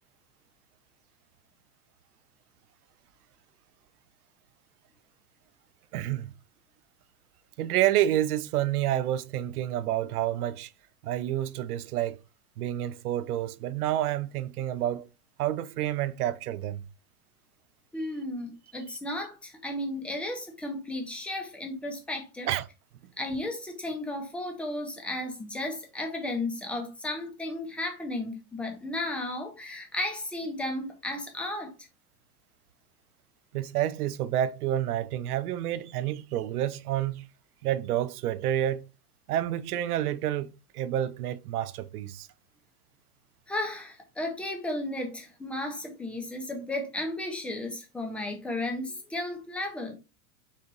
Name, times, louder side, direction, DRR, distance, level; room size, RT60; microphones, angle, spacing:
voice 1, 5.9-6.3 7.6-10.7 11.0-12.2 12.6-15.1 15.4-16.8 22.5-22.7 33.5-37.3 37.6-38.9 39.3-42.3, right 12 dB, 75° right, 0.6 m, -29 dB
voice 2, 17.9-22.5 23.2-31.7 43.5-49.9, left 1 dB, 5° left, 0.4 m, -34 dB
4.1 x 2.6 x 3.7 m
hypercardioid pair, 120°, 46 cm